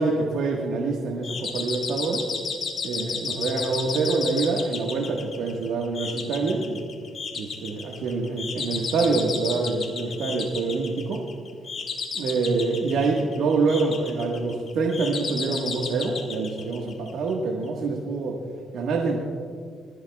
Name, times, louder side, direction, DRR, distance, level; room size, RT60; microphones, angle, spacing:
voice 1, 0.0-2.3 2.8-6.8 7.4-11.2 12.1-18.4 18.7-19.2, right 3 dB, 80° right, 0 dB, 1.5 m, -26 dB
sound 1, 1.2-17.3, left 5 dB, 50° left, 1.9 m, -33 dB
22.0 x 14.0 x 2.4 m, 2.1 s
cardioid pair, 90°, 0 cm